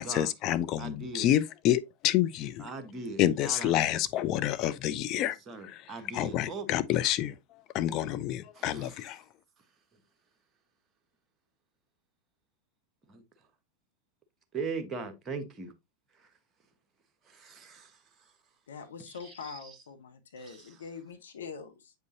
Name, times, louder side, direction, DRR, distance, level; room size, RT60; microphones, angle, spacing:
voice 1, 0.0-2.7 3.2-5.4 5.6-9.2, left 12 dB, 35° left, 0.6 m, -28 dB
voice 2, 0.8-1.3 2.6-4.0 5.2-6.7 8.5-9.0 13.1-13.2 14.5-15.7 16.2-16.3 17.3-18.0 19.1-19.7 20.4-20.7, right 4 dB, 20° right, 1.3 m, -40 dB
voice 3, 18.7-21.9, left 5 dB, 65° left, 1.1 m, -44 dB
7.9 x 5.3 x 2.7 m
figure-of-eight pair, 90°, 0 cm